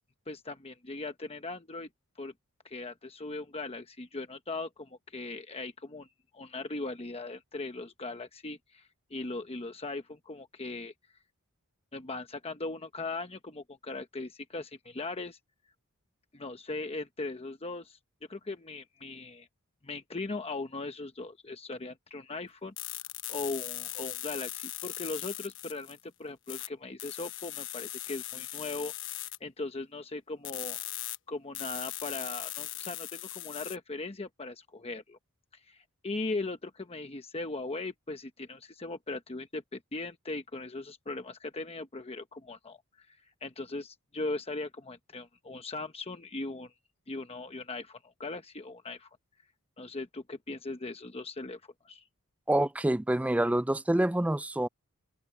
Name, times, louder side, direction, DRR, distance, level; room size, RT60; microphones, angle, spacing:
voice 1, 0.3-1.9 2.2-2.3 2.6-6.1 6.3-10.9 11.9-15.4 16.3-18.0 18.3-19.5 19.8-22.7 23.3-30.8 31.3-35.2 35.5-46.7 47.1-49.1 49.8-52.0, left 3 dB, 25° left, 1.0 m, -39 dB
sound 1, 22.8-26.0 26.5-26.7 27.0-29.4 30.4-31.2 31.5-33.8, left 14 dB, 60° left, 1.0 m, -39 dB
voice 2, 52.5-54.7, right 1 dB, 5° right, 0.3 m, -27 dB
open air
head